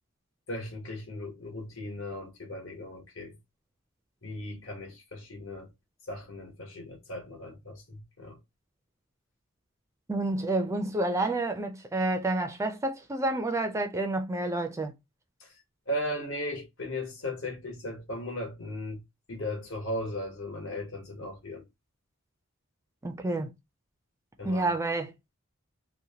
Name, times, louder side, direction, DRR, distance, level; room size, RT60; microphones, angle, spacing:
voice 1, 0.5-3.3 4.2-5.7 6.1-8.4 15.4-15.6 15.9-19.0 19.3-21.6 24.4-24.7, left 1 dB, 75° left, 1.2 m, -37 dB
voice 2, 10.1-14.9 23.0-23.5 24.4-25.1, right 2 dB, 15° right, 0.3 m, -29 dB
2.8 x 2.1 x 2.7 m
head